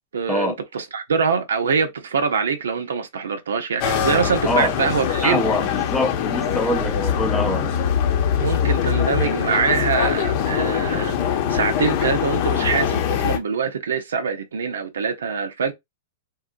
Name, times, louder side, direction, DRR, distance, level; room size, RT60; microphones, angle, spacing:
voice 1, 0.1-5.4 8.4-15.7, right 5 dB, 90° right, 0.7 m, -24 dB
sound 1, 3.8-13.4, left 8 dB, 45° left, 0.8 m, -22 dB
voice 2, 5.2-7.7, left 1 dB, 5° left, 0.5 m, -24 dB
3.5 x 2.3 x 2.5 m
hypercardioid pair, 135°, 0 cm